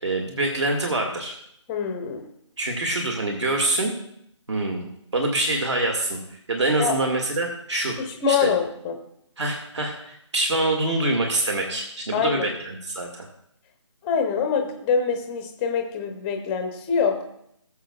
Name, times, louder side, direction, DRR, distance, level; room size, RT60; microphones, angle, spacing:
voice 1, 0.0-1.4 2.6-3.9 4.5-4.9 5.1-8.0 8.3-8.5 9.4-13.3, right 2 dB, 65° right, 2 dB, 1.8 m, -25 dB
voice 2, 1.7-2.2 6.8-6.9 8.0-9.0 12.1-12.5 14.0-17.2, left 6 dB, 10° left, 5 dB, 0.5 m, -24 dB
18.5 x 7.4 x 2.3 m, 0.72 s
figure-of-eight pair, 155°, 16 cm